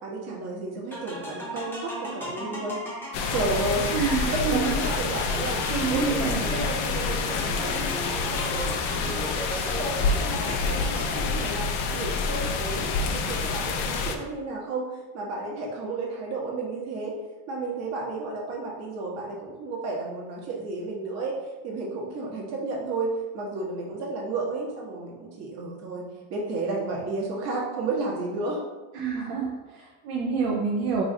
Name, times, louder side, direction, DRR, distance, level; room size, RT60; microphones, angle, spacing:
voice 1, 0.0-2.8 3.3-3.9 4.3-5.6 5.9-6.2 6.5-9.3 9.6-11.7 11.9-17.1 17.5-21.4 21.6-28.6, right 3 dB, 50° right, -2 dB, 1.0 m, -32 dB
sound 1, 0.9-11.6, equal, 5° left, 0.7 m, -37 dB
sound 2, 3.1-14.2, left 4 dB, 75° left, 0.5 m, -28 dB
voice 2, 3.9-4.8 5.3-6.5 28.9-31.0, right 5 dB, 75° right, -2 dB, 0.6 m, -28 dB
3.1 x 2.5 x 3.8 m, 1.2 s
cardioid pair, 145°, 32 cm